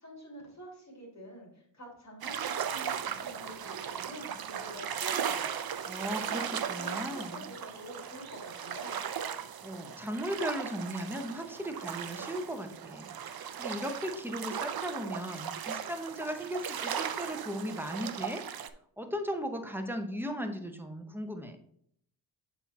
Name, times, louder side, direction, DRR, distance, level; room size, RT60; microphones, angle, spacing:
voice 1, 0.0-5.5 6.2-9.0, equal, 35° left, -2 dB, 2.5 m, -47 dB
sound 1, 2.2-18.7, right 8 dB, 50° right, 0.5 m, -37 dB
voice 2, 5.9-7.5 9.6-18.4 19.0-21.6, equal, 5° right, 5 dB, 0.7 m, -37 dB
8.0 x 4.3 x 4.1 m, 0.68 s
wide cardioid pair, 140°, 48 cm